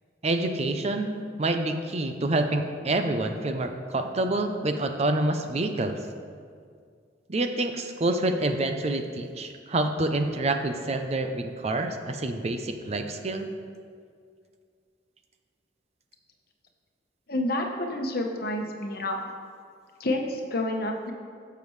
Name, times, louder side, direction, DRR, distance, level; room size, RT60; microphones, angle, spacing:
voice 1, 0.2-6.0 7.3-13.5, right 2 dB, 35° right, 6 dB, 0.6 m, -27 dB
voice 2, 17.3-19.3 20.0-21.1, left 1 dB, 60° left, 2 dB, 1.1 m, -29 dB
16.0 x 6.9 x 3.2 m, 2.2 s
head